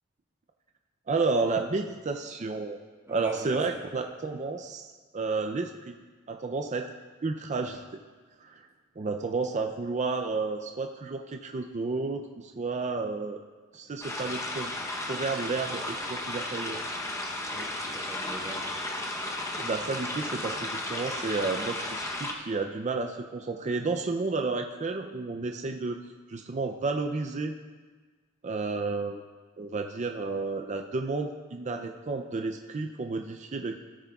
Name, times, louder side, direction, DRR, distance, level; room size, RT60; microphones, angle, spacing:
voice 1, 1.1-2.8 3.1-5.9 6.3-6.9 7.2-7.9 8.4-8.7 9.0-13.4 13.7-14.7 15.1-16.8 19.6-26.0 26.3-27.5 28.4-29.2 29.6-33.8, right 3 dB, 35° right, 4 dB, 0.4 m, -31 dB
voice 2, 3.1-3.8 17.5-18.6 19.2-19.6, right 1 dB, 15° right, -3 dB, 1.5 m, -43 dB
sound 1, 14.0-22.3, left 1 dB, 15° left, 0.8 m, -34 dB
16.5 x 9.5 x 2.3 m, 1.4 s
head